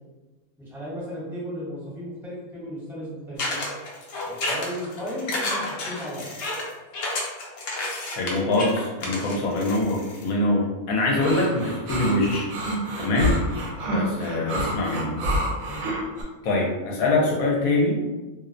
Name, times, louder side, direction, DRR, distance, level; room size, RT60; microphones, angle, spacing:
voice 1, 0.6-3.6 4.2-6.3 13.8-14.1 15.7-15.9, equal, ahead, -10 dB, 0.6 m, -35 dB
sound 1, 3.4-10.3, left 2 dB, 65° left, 0.6 m, -31 dB
voice 2, 8.2-12.5 13.0-13.4 13.9-15.2 16.4-18.0, left 2 dB, 80° left, -2 dB, 1.0 m, -24 dB
sound 2, 11.2-16.2, equal, 75° right, 1.0 m, -28 dB
2.5 x 2.0 x 2.5 m, 1.2 s
omnidirectional pair, 1.5 m